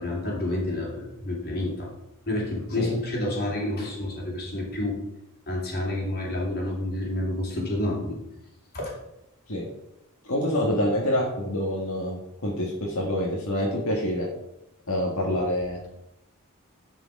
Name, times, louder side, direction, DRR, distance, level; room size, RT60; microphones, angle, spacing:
voice 1, 0.0-1.9 2.3-5.0 5.5-8.2 8.7-8.9 15.3-15.4, left 1 dB, 45° left, -2 dB, 2.9 m, -29 dB
voice 2, 10.3-14.3 14.9-15.9, left 1 dB, 75° left, -3 dB, 1.8 m, -26 dB
10.5 x 5.1 x 4.8 m, 0.88 s
head